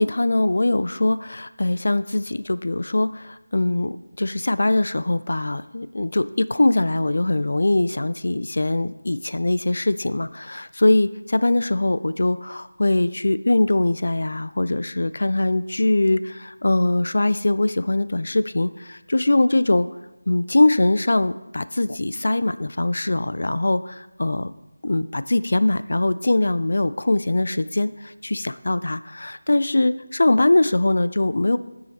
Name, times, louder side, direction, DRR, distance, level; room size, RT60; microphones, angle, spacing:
voice 1, 0.0-19.9 20.3-24.5 24.8-31.6, left 2 dB, 60° left, 14 dB, 0.3 m, -22 dB
8.8 x 6.3 x 4.2 m, 1.0 s
figure-of-eight pair, 165°, 0 cm